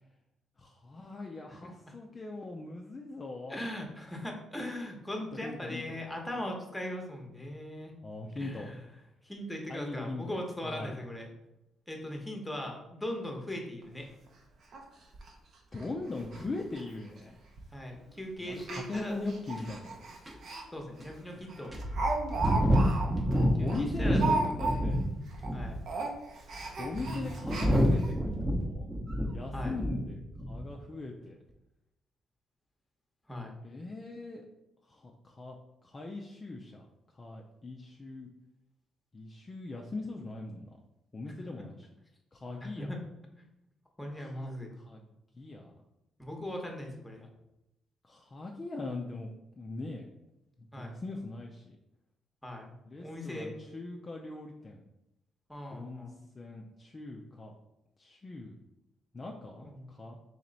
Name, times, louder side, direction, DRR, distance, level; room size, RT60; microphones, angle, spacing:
voice 1, 0.6-3.6 5.2-6.3 8.0-8.7 9.7-10.9 15.7-17.4 18.4-19.9 21.3-21.5 23.6-25.0 26.8-28.9 29.3-30.2 30.5-31.4 33.6-34.4 34.9-35.6 35.8-36.9 37.1-38.3 39.1-40.7 41.1-41.9 42.3-42.9 44.2-44.5 44.8-45.0 45.3-45.7 48.0-49.3 49.6-50.1 50.6-51.8 52.9-54.8 55.7-56.1 56.3-57.5 58.0-58.6 59.1-60.2, left 2 dB, 30° left, 0 dB, 0.4 m, -40 dB
voice 2, 3.5-7.9 8.4-8.8 9.2-11.3 11.9-14.1 17.7-19.1 20.7-21.8 23.6-24.8 25.5-25.8 29.5-29.8 33.3-33.6 42.6-43.0 43.4-43.5 44.0-44.7 46.2-47.3 50.7-50.9 52.4-53.6 55.5-56.1 59.6-59.9, left 1 dB, 10° left, 1 dB, 0.9 m, -39 dB
Speech, 13.8-13.9 14.3-14.4 14.7-14.8 15.1-15.3 15.7-15.9 16.2-16.4 16.7-16.8 17.6-17.8 18.6-20.6 21.0-21.1 21.5-25.0 25.3-25.5 25.8-28.1 28.7-28.8 29.1-29.2, right 3 dB, 60° right, 0.7 m, -35 dB
sound 1, 19.6-19.7 20.3-20.4 21.0-21.1 21.7-25.1 25.4-25.9 26.6-30.0 30.3-30.7, equal, 15° right, 0.8 m, -28 dB
3.1 x 3.0 x 3.9 m, 0.87 s
cardioid pair, 90°, 0 cm